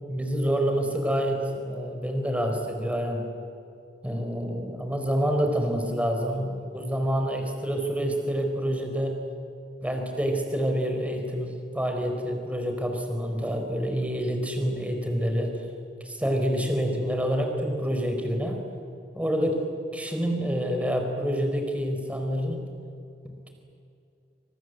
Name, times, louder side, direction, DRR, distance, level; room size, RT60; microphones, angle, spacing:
voice 1, 0.1-3.3 4.0-9.2 9.8-15.6 16.0-18.6 19.1-19.7 19.9-22.7 23.2-23.5, equal, 10° right, 3 dB, 4.3 m, -27 dB
27.0 x 26.5 x 8.1 m, 2.5 s
head